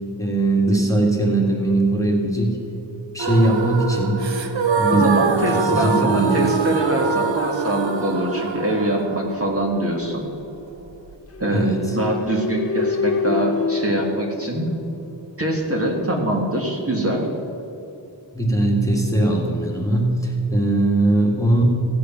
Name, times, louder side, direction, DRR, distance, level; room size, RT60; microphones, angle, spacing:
voice 1, 0.2-2.6 3.1-4.3 4.8-5.2 5.5-6.4 11.5-12.0 18.3-21.6, right 2 dB, 5° left, -1 dB, 1.9 m, -20 dB
sound 1, 3.2-11.1, right 4 dB, 75° right, 1.0 m, -24 dB
voice 2, 4.9-10.3 11.4-11.7 11.9-14.7 15.4-17.3, right 1 dB, 30° right, -1 dB, 1.7 m, -23 dB
sound 2, 11.3-15.2, left 4 dB, 35° left, 0.6 m, -26 dB
15.5 x 8.3 x 5.9 m, 3.0 s
wide cardioid pair, 90°, 45 cm